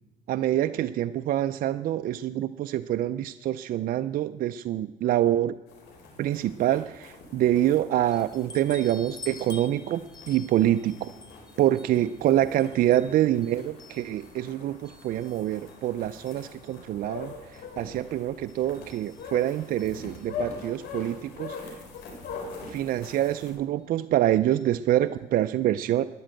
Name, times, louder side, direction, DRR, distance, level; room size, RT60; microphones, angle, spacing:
voice 1, 0.3-5.6 6.2-11.1 11.6-21.8 22.7-26.1, right 12 dB, 60° right, 11 dB, 0.4 m, -26 dB
sound 1, 5.7-23.5, left 3 dB, 85° left, 4.1 m, -50 dB
sound 2, 8.1-14.4 14.8-15.9 16.3-16.8 17.5-17.6 17.9-18.0 18.5-20.5 21.5-21.6 22.0-22.1 23.2-23.4 24.5-24.7 25.1-25.2 25.5-25.6, left 3 dB, 25° left, 1.5 m, -49 dB
sound 3, 16.7-22.7, left 6 dB, 65° left, 4.6 m, -38 dB
13.5 x 10.0 x 7.6 m, 1.2 s
cardioid pair, 110°, 17 cm